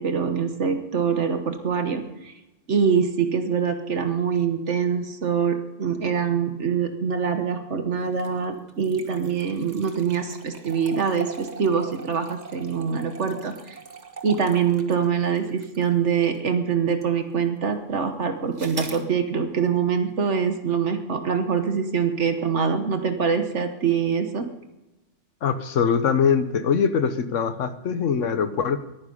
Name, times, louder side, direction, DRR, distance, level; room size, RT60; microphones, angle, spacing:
voice 1, 0.0-2.3 2.7-13.8 14.2-24.5, right 6 dB, 70° right, 7 dB, 1.5 m, -24 dB
sound 1, 8.1-16.5 17.0-17.1 18.6-19.0, right 4 dB, 35° right, 1.3 m, -41 dB
voice 2, 25.4-28.8, left 6 dB, 80° left, 12 dB, 1.3 m, -22 dB
21.0 x 9.9 x 5.4 m, 0.98 s
omnidirectional pair, 1.3 m